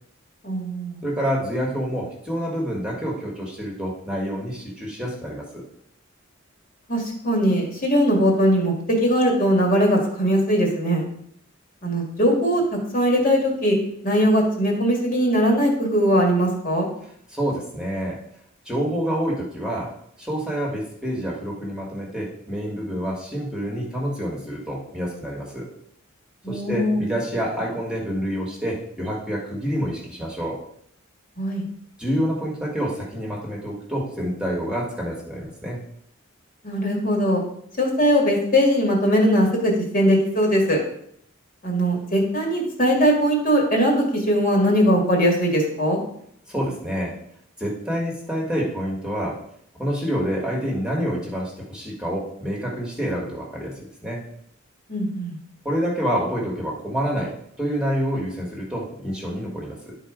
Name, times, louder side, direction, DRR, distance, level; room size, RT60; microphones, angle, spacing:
voice 1, 0.4-1.0 6.9-11.0 11.8-12.6 12.9-13.8 14.0-16.9 26.4-27.0 31.4-31.6 36.6-37.4 37.8-40.8 41.6-46.0 54.9-55.4, equal, 40° left, 0 dB, 1.9 m, -20 dB
voice 2, 1.0-5.6 17.3-18.2 18.6-25.7 26.5-30.6 32.0-35.8 46.5-47.1 47.6-49.4 49.8-54.2 55.6-60.0, equal, 5° right, -2 dB, 1.6 m, -27 dB
11.0 x 4.1 x 4.9 m, 0.69 s
head